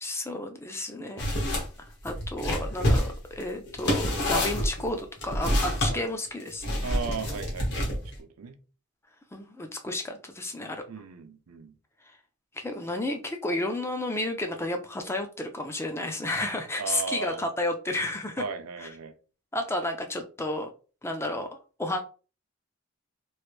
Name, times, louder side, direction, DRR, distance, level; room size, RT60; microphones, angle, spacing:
voice 1, 0.0-1.3 1.8-6.9 9.3-10.8 12.1-12.2 12.6-18.4 18.8-18.9 19.5-20.7 21.0-22.0, left 1 dB, 10° left, 0.4 m, -32 dB
sound 1, 1.2-1.7 2.0-5.9 6.6-8.2, equal, 50° left, 1.1 m, -27 dB
voice 2, 6.8-8.6 10.9-11.7 16.8-17.4 18.4-19.1, right 5 dB, 85° right, 0.5 m, -36 dB
3.1 x 2.5 x 3.1 m
head